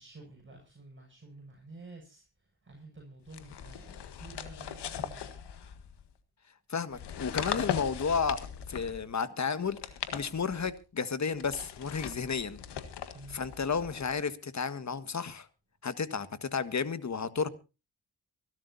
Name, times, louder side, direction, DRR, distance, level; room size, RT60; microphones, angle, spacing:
voice 1, 0.0-5.2 13.1-13.4, right 2 dB, 30° right, 7.2 m, -51 dB
sound 1, 3.3-6.1 6.9-9.1 9.6-10.8 11.4-14.2, left 9 dB, 85° left, 1.7 m, -39 dB
voice 2, 6.7-8.4 8.7-9.8 10.1-12.6 13.3-15.5 15.8-17.5, left 5 dB, 45° left, 1.6 m, -32 dB
24.5 x 12.5 x 2.7 m
cardioid pair, 60°, 40 cm